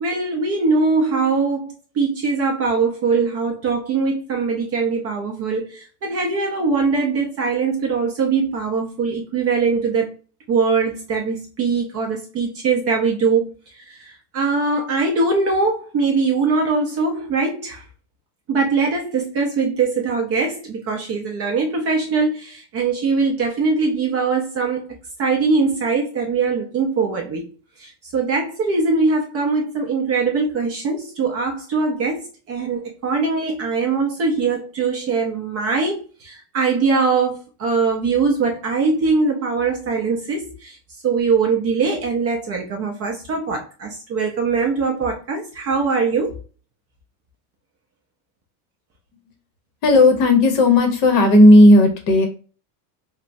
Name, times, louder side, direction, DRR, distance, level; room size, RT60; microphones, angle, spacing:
voice 1, 0.0-10.1 10.5-13.5 13.9-17.8 18.5-24.9 25.2-27.5 27.8-40.8 41.0-46.4, right 4 dB, 30° right, 0.4 m, -21 dB
voice 2, 49.8-52.3, left 1 dB, 40° left, 0.7 m, -12 dB
3.3 x 2.0 x 2.5 m
supercardioid pair, 140°, 50 cm